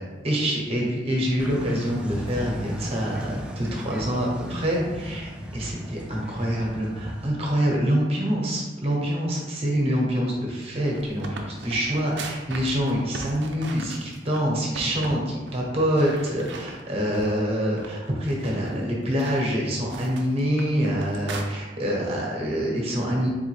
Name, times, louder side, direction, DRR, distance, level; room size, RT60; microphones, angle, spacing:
voice 1, 0.0-23.3, equal, 35° right, -2 dB, 1.1 m, -26 dB
sound 1, 1.4-7.3, equal, 5° right, 0.4 m, -36 dB
sound 2, 10.6-14.4 14.7-15.2 15.5-15.6 16.0-17.4 17.8-21.4, right 3 dB, 65° right, 0.5 m, -39 dB
4.2 x 3.4 x 3.2 m, 1.3 s
head